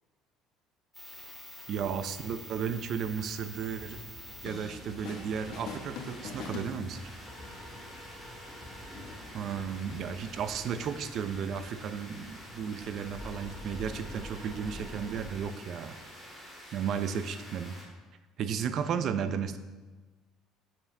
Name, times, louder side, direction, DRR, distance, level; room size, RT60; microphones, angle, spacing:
sound 1, 0.9-17.8, equal, 5° right, 2.5 m, -48 dB
sound 2, 1.7-15.4, left 1 dB, 25° left, 1.5 m, -48 dB
voice 1, 1.7-4.0 4.4-7.0 9.3-16.0 16.7-17.8 18.4-19.6, right 7 dB, 55° right, 11 dB, 0.6 m, -34 dB
sound 3, 4.5-5.3 5.5-7.3, left 5 dB, 70° left, 1.0 m, -42 dB
8.3 x 7.3 x 3.4 m, 1.3 s
supercardioid pair, 95°, 0 cm